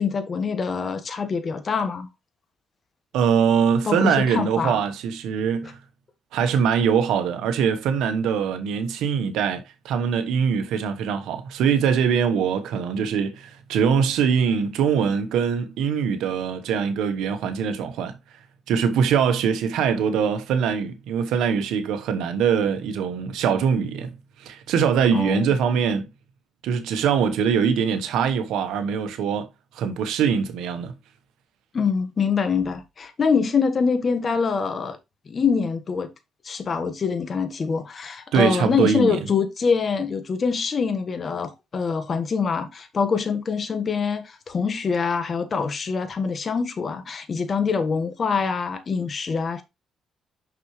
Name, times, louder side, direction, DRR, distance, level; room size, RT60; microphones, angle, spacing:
voice 1, 0.0-2.1 3.8-4.8 5.6-5.7 25.1-25.5 31.7-35.0 35.3-36.1 36.4-49.6, left 5 dB, 40° left, 1.4 m, -24 dB
voice 2, 3.1-5.8 6.3-18.2 18.7-26.1 26.6-29.5 29.7-30.9 38.3-39.2, right 7 dB, 85° right, 1.2 m, -22 dB
6.1 x 6.1 x 3.2 m
cardioid pair, 90°, 0 cm